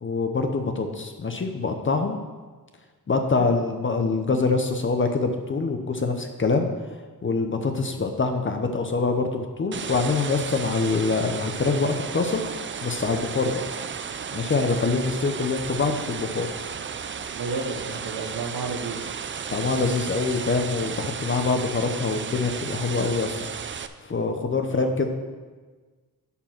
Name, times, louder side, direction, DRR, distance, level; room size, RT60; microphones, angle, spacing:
voice 1, 0.0-2.2 3.1-6.7 7.2-12.4 12.8-13.6 14.3-16.5 19.5-23.4 24.0-25.1, left 4 dB, 35° left, 5 dB, 0.7 m, -25 dB
sound 1, 9.7-23.9, right 6 dB, 35° right, 0.4 m, -34 dB
voice 2, 17.3-19.0 24.7-24.9, right 4 dB, 75° right, 4 dB, 1.2 m, -32 dB
11.0 x 4.5 x 5.9 m, 1.4 s
wide cardioid pair, 120°, 36 cm